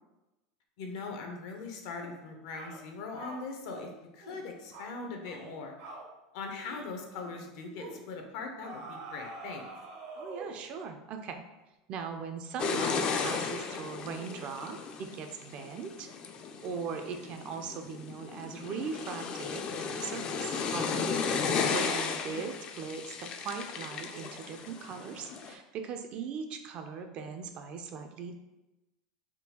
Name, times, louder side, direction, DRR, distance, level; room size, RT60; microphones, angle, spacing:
voice 1, 0.8-5.7 6.3-9.6 22.3-22.5, left 4 dB, 70° left, 3 dB, 0.6 m, -41 dB
sound 1, 2.0-2.2 2.6-2.8 3.2-3.9 4.2-4.4 4.7-4.9 5.2-5.5 5.8-6.1 6.5-6.8 7.1-7.3 7.8-8.0 8.6-10.7, right 2 dB, 80° right, 0.8 m, -45 dB
voice 2, 10.2-11.4 11.9-16.1 16.6-21.1 21.7-28.4, right 6 dB, 45° right, 6 dB, 0.4 m, -39 dB
sound 2, 12.6-25.5, left 5 dB, 35° left, 0.3 m, -35 dB
3.6 x 2.2 x 2.8 m, 1.0 s
supercardioid pair, 125°, 3 cm